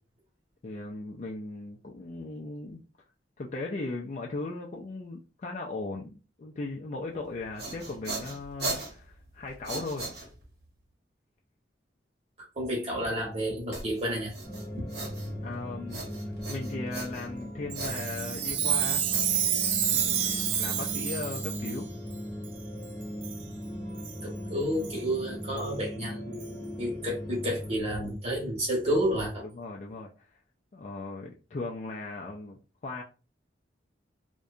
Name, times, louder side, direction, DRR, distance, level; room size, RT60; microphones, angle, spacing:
voice 1, 0.6-2.8 3.4-6.1 6.4-10.1 15.4-16.0 16.5-19.0 19.9-21.9 29.4-30.4 30.7-33.0, left 3 dB, 40° left, 0.3 m, -37 dB
sound 1, 7.3-10.7 13.7-15.5 15.9-17.4 17.7-20.0, right 2 dB, 55° right, 0.9 m, -39 dB
voice 2, 12.5-14.3 14.7-14.9 24.2-29.4, equal, 35° right, 1.1 m, -30 dB
sound 2, 14.4-27.8, equal, 10° left, 0.7 m, -38 dB
Chime, 17.7-21.8 22.4-22.5 23.2-23.4 24.0-24.2 24.8-24.9 25.6-25.7 26.4-26.5, right 9 dB, 75° right, 0.4 m, -29 dB
2.7 x 2.2 x 2.4 m
head